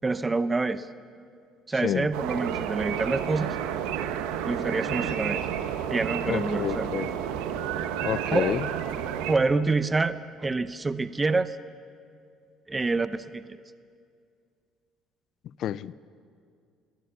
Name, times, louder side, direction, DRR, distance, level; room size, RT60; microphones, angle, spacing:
voice 1, 0.0-0.9 1.7-3.6 4.4-5.4 5.9-6.9 8.3-8.5 9.3-11.6 12.7-13.6, right 3 dB, 20° right, 13 dB, 0.8 m, -27 dB
sound 1, 2.1-9.3, right 9 dB, 90° right, 1.3 m, -31 dB
voice 2, 6.3-7.1 8.0-8.7 15.6-15.9, left 11 dB, 60° left, 19 dB, 0.6 m, -29 dB
23.5 x 17.5 x 7.1 m, 2.3 s
cardioid pair, 100°, 0 cm